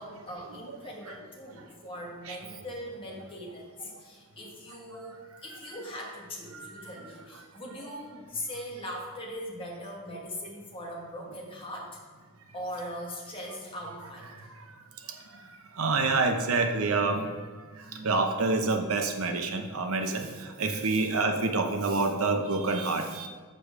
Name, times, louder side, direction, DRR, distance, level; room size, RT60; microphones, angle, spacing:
voice 1, 0.0-5.2 5.4-12.0 12.5-14.5 20.0-20.2 20.5-21.0 22.0-22.2, equal, 25° left, -2 dB, 1.5 m, -40 dB
voice 2, 6.5-7.1 7.8-7.9 15.7-17.3 17.8-23.3, right 3 dB, 70° right, 5 dB, 0.8 m, -28 dB
7.0 x 5.0 x 6.1 m, 1.5 s
head